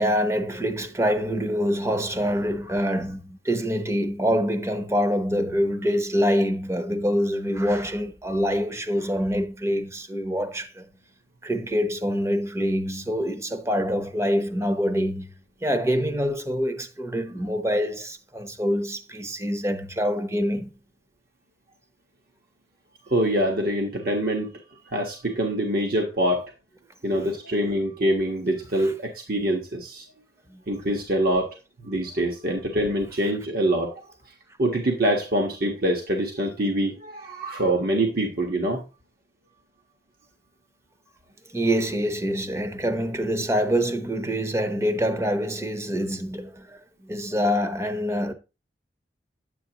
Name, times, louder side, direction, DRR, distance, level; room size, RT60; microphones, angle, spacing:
voice 1, 0.0-10.9 11.4-15.3 15.6-20.7 28.8-28.9 30.5-30.6 41.5-48.3, equal, 15° right, 0.8 m, -25 dB
voice 2, 23.1-24.5 24.8-26.5 27.0-30.0 30.7-31.5 31.8-34.0 34.6-38.8, right 1 dB, 55° right, 1.4 m, -25 dB
10.0 x 8.3 x 2.9 m
head